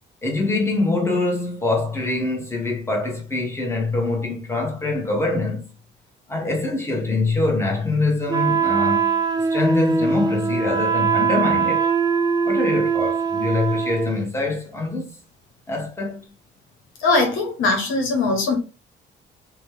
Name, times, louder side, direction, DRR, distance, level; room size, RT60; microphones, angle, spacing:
voice 1, 0.2-5.7 6.3-9.2 9.5-11.9 12.4-15.1 15.7-16.2, left 2 dB, 15° left, 1.1 m, -24 dB
Wind instrument woodwind instrument, 8.3-14.2, right 6 dB, 20° right, 0.4 m, -21 dB
voice 2, 17.0-18.6, left 3 dB, 85° left, 1.0 m, -20 dB
2.9 x 2.2 x 3.4 m
cardioid pair, 90°, 20 cm